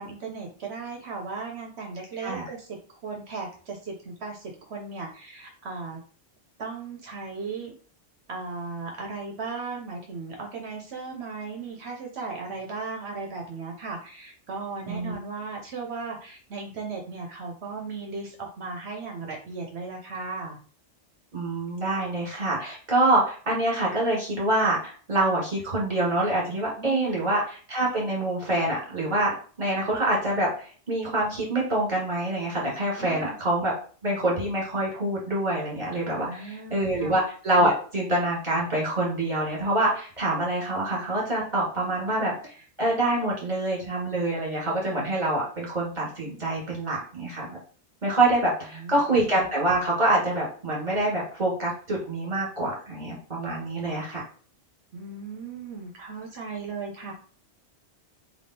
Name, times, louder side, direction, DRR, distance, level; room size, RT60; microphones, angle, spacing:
voice 1, 0.0-6.0 6.6-7.7 8.3-20.6 26.8-27.3 33.0-33.4 36.2-37.1 48.7-49.0 54.9-57.1, right 4 dB, 70° right, 1 dB, 1.0 m, -36 dB
voice 2, 21.3-33.7 34.0-47.6 48.0-54.2, right 1 dB, 40° right, -3 dB, 2.0 m, -26 dB
3.5 x 2.8 x 4.2 m, 0.42 s
omnidirectional pair, 1.2 m